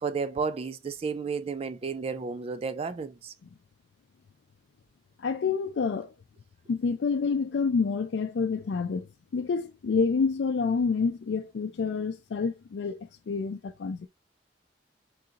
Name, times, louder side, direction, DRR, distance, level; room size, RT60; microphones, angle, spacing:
voice 1, 0.0-3.3, right 5 dB, 35° right, 0.3 m, -32 dB
voice 2, 5.2-6.1 6.7-14.1, left 5 dB, 85° left, 0.4 m, -28 dB
3.8 x 3.8 x 2.7 m
head